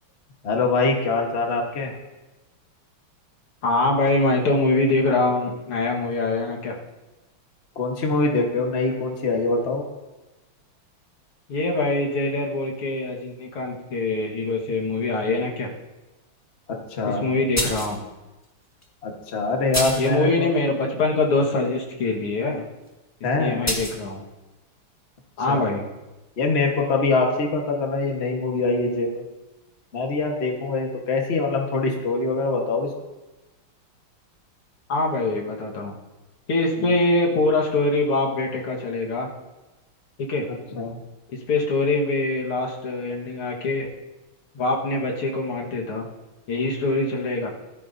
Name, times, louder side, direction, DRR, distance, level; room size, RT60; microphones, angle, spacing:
voice 1, 0.4-1.9 7.7-9.8 16.9-17.5 19.0-20.5 23.2-23.7 25.5-25.7 26.4-29.2 29.9-32.9 40.7-41.0, left 3 dB, 35° left, 1 dB, 1.4 m, -24 dB
voice 2, 3.6-6.8 11.5-15.7 17.0-18.0 20.0-22.7 23.4-24.2 25.4-25.8 34.9-35.9 36.5-39.3 40.2-40.5 41.5-43.9 44.5-46.1 46.5-47.5, left 2 dB, 80° left, -1 dB, 2.5 m, -23 dB
sound 1, 17.6-18.0 18.8-18.9 19.7-20.1 23.7-24.0, left 1 dB, 10° left, 1.1 m, -26 dB
15.5 x 13.5 x 2.7 m, 1.1 s
omnidirectional pair, 2.4 m